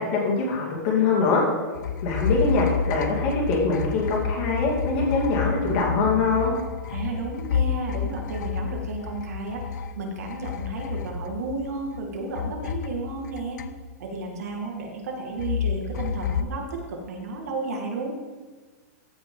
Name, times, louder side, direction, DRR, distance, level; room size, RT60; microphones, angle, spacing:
voice 1, 0.0-1.4 2.0-6.5, left 4 dB, 35° left, -3 dB, 2.7 m, -23 dB
sound 1, 1.7-12.0 12.3-14.2 15.4-16.4, left 6 dB, 90° left, 0.5 m, -30 dB
voice 2, 6.9-9.7 10.0-13.6 14.0-18.2, right 3 dB, 60° right, 1 dB, 2.1 m, -33 dB
15.0 x 5.9 x 3.8 m, 1.4 s
supercardioid pair, 175°, 9 cm